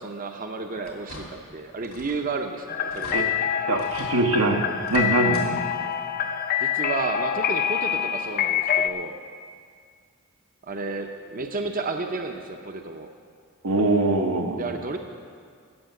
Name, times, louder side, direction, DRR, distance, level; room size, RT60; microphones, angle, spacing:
voice 1, 0.0-3.3 6.6-9.1 10.6-13.1 14.6-15.0, right 3 dB, 40° right, 5 dB, 0.7 m, -32 dB
sound 1, 0.8-1.5 1.8-2.3 2.6-2.7 2.9-3.2 3.8-4.2 4.8-5.5 5.8-5.9 7.3-7.4 7.9-8.0, left 2 dB, 85° left, 2.8 m, -42 dB
sound 2, 2.7-8.9, left 8 dB, 40° left, 0.5 m, -26 dB
voice 2, 3.6-5.6 13.6-14.7, right 2 dB, 85° right, 3 dB, 1.2 m, -23 dB
15.5 x 6.6 x 8.3 m, 2.1 s
head